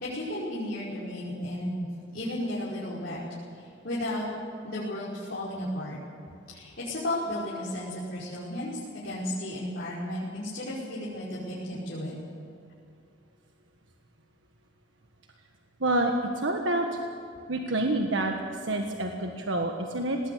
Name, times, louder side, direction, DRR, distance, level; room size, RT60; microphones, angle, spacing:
voice 1, 0.0-1.7 2.1-3.2 3.5-4.2 4.6-6.0 6.5-12.1, left 1 dB, 55° left, -9 dB, 5.4 m, -34 dB
voice 2, 15.8-16.9 17.5-18.3 18.6-20.2, right 1 dB, 75° right, 3 dB, 1.5 m, -27 dB
19.5 x 19.0 x 8.5 m, 2.4 s
head